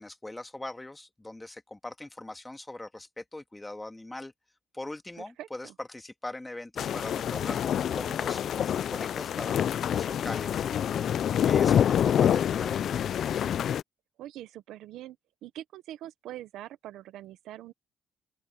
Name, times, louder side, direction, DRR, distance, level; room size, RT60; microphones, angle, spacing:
voice 1, 0.0-4.3 4.7-7.6 7.9-13.0, left 2 dB, 15° left, 2.1 m, -41 dB
voice 2, 5.2-5.7 14.2-15.2 15.4-17.7, right 13 dB, 85° right, 1.0 m, -43 dB
sound 1, 6.8-13.8, left 9 dB, 65° left, 0.5 m, -27 dB
open air
cardioid pair, 90°, 0 cm